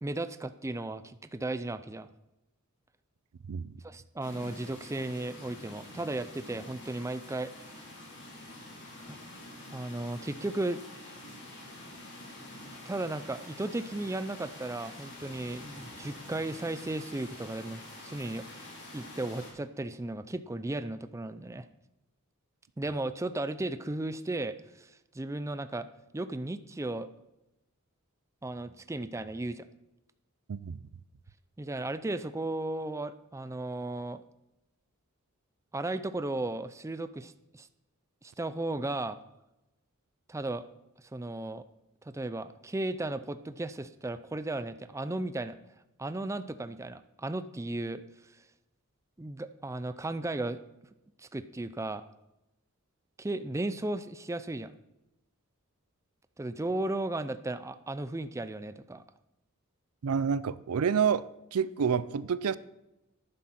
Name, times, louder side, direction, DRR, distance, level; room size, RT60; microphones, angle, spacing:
voice 1, 0.0-2.1 3.8-7.5 9.1-9.2 9.7-10.8 12.9-18.5 18.9-21.7 22.8-25.9 26.1-27.1 28.4-29.7 31.6-34.2 35.7-37.7 38.2-39.2 40.3-40.6 41.1-41.6 42.0-45.6 46.0-48.0 49.2-50.6 51.2-52.0 53.2-54.7 56.4-59.0, right 2 dB, 15° right, 0.4 m, -35 dB
sound 1, 4.2-19.5, left 1 dB, 55° left, 3.6 m, -47 dB
voice 2, 30.5-30.8 60.0-62.6, right 7 dB, 85° right, 0.5 m, -28 dB
11.5 x 10.0 x 4.3 m
head